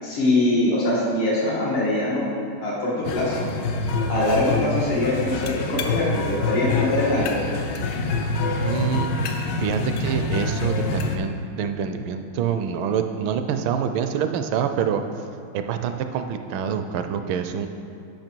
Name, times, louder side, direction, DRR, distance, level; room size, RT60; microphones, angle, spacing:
voice 1, 0.0-2.2 2.6-3.4 4.1-7.4, left 2 dB, 85° left, -6 dB, 2.7 m, -23 dB
sound 1, 3.1-11.2, left 3 dB, 70° left, 1.1 m, -26 dB
voice 2, 8.6-9.1 9.6-15.0 15.5-17.7, right 7 dB, 75° right, 7 dB, 1.3 m, -26 dB
10.5 x 5.5 x 4.5 m, 2.6 s
omnidirectional pair, 2.3 m